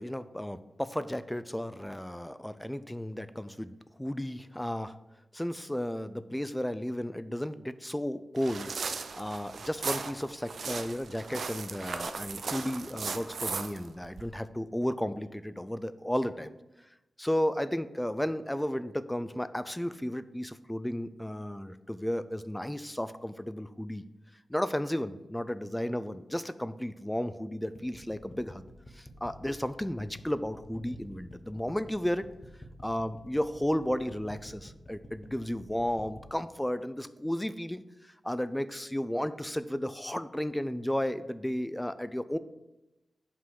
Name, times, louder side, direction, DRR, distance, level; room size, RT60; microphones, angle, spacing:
voice 1, 0.0-5.0 5.3-8.7 9.2-16.5 17.2-24.0 24.5-28.7 28.9-32.3 32.8-42.4, equal, 5° left, 13 dB, 0.3 m, -33 dB
sound 1, 8.4-14.2, right 5 dB, 65° right, 0.5 m, -37 dB
sound 2, 27.8-36.3, left 1 dB, 25° left, 1.0 m, -49 dB
5.7 x 4.9 x 6.3 m, 0.97 s
wide cardioid pair, 135°, 0 cm